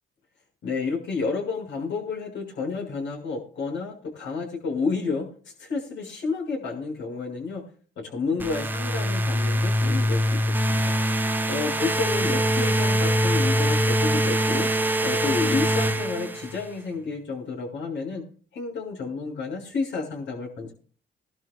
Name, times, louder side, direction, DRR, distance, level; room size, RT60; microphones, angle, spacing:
voice 1, 0.6-5.3 5.6-7.6 8.0-10.9 11.5-14.7 15.0-18.2 18.5-20.7, left 4 dB, 70° left, 0 dB, 6.7 m, -30 dB
sound 1, 8.4-16.7, equal, 10° right, 1.0 m, -23 dB
23.5 x 12.5 x 2.5 m, 0.43 s
cardioid pair, 90°, 20 cm